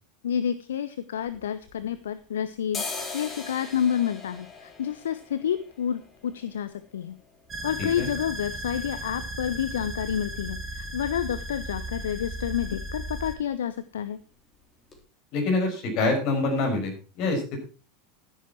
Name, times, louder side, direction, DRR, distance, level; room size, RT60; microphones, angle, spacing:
voice 1, 0.2-2.8 3.1-7.1 7.6-14.2, left 9 dB, 65° left, 13 dB, 0.6 m, -29 dB
sound 1, 1.2-2.2 2.6-10.3 10.6-10.7 10.9-11.5 11.8-12.0 12.3-12.5 12.8-13.5 13.9-14.0 14.5-14.6 14.9-15.0, left 4 dB, 25° left, 3.9 m, -41 dB
sound 2, 7.5-13.3, right 1 dB, 25° right, 2.3 m, -36 dB
voice 2, 15.3-17.6, left 2 dB, 45° left, 2 dB, 6.2 m, -25 dB
12.0 x 10.5 x 4.5 m, 0.36 s
figure-of-eight pair, 80°, 0 cm